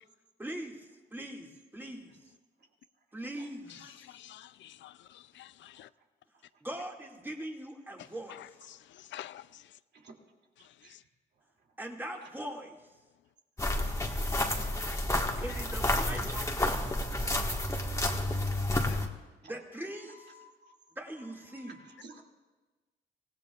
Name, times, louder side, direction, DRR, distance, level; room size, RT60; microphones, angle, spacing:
voice 1, 0.4-2.2 3.1-4.1 6.6-8.4 11.8-12.8 15.4-17.0 19.4-20.4 21.0-21.8 22.1-22.2, right 1 dB, 10° right, 2.2 m, -41 dB
voice 2, 4.0-5.9 8.4-9.6 10.9-11.0, left 12 dB, 75° left, 0.4 m, -49 dB
sound 1, 13.6-19.1, left 1 dB, 15° left, 1.6 m, -30 dB
voice 3, 14.0-14.9 20.4-20.7 21.5-21.8 22.0-22.2, right 1 dB, 65° right, 2.7 m, -53 dB
25.5 x 17.5 x 2.4 m
cardioid pair, 85°, 19 cm